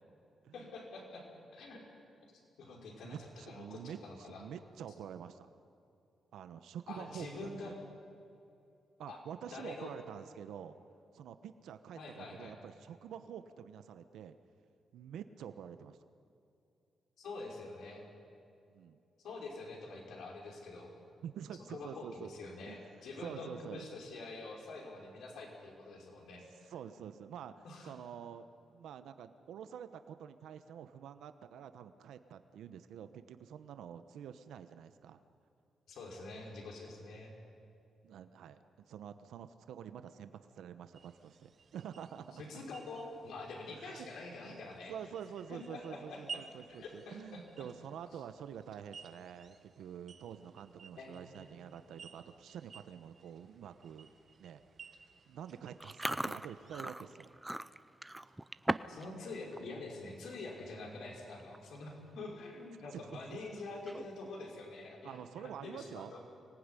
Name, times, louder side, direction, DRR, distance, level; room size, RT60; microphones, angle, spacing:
voice 1, 0.5-1.9 2.6-4.4 6.9-7.7 9.1-9.2 9.5-9.9 12.0-12.5 17.2-18.0 19.2-20.9 21.7-26.4 27.6-27.9 35.9-37.3 42.4-44.9 45.5-46.4 46.8-47.4 51.0-51.6 58.9-66.2, left 3 dB, 75° left, 0 dB, 5.7 m, -46 dB
voice 2, 3.0-5.5 6.3-7.7 9.0-10.7 11.1-14.3 14.9-16.0 18.7-19.0 21.2-22.3 22.7-22.8 23.2-23.9 26.7-35.2 38.0-42.4 43.7-44.1 44.4-54.1 54.4-54.6 54.9-57.3 58.3-58.4 62.9-63.4 65.0-66.3, right 8 dB, 90° right, 10 dB, 1.0 m, -48 dB
sound 1, 40.9-56.8, right 5 dB, 40° right, 1.1 m, -55 dB
Chewing mastication, 55.8-59.1 59.4-59.7 60.1-60.3 61.1-61.2 61.4-61.8 62.2-62.3 63.7-64.3, right 1 dB, 5° right, 0.5 m, -38 dB
24.5 x 19.5 x 9.9 m, 2.6 s
wide cardioid pair, 165°, 0 cm